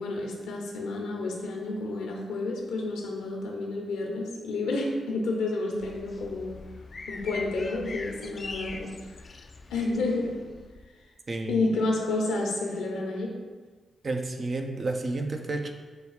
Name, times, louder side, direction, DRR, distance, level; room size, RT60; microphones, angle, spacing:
voice 1, 0.0-6.6 7.1-9.2 9.7-10.4 11.5-13.4, left 2 dB, 85° left, 0 dB, 0.8 m, -30 dB
sound 1, 5.8-10.9, left 3 dB, 50° left, 0.4 m, -42 dB
voice 2, 14.0-15.7, right 2 dB, 50° right, 4 dB, 0.6 m, -30 dB
4.7 x 2.4 x 4.7 m, 1.4 s
supercardioid pair, 45°, 0 cm